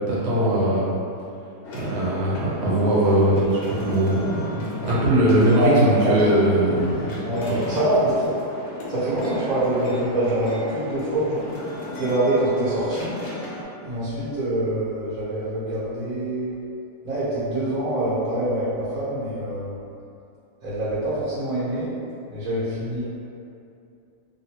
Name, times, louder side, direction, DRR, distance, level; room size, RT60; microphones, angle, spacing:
voice 1, 0.1-0.9 1.7-7.2 7.5-7.6, right 1 dB, 85° right, -7 dB, 1.4 m, -20 dB
sound 1, 1.6-13.6, left 1 dB, 85° left, 1.3 m, -35 dB
voice 2, 7.2-8.3 8.9-11.6 11.9-13.2 13.8-16.5 17.0-19.7 20.6-21.9 22.3-23.0, right 1 dB, 65° right, -12 dB, 1.5 m, -25 dB
3.2 x 2.6 x 2.9 m, 2.6 s
omnidirectional pair, 1.7 m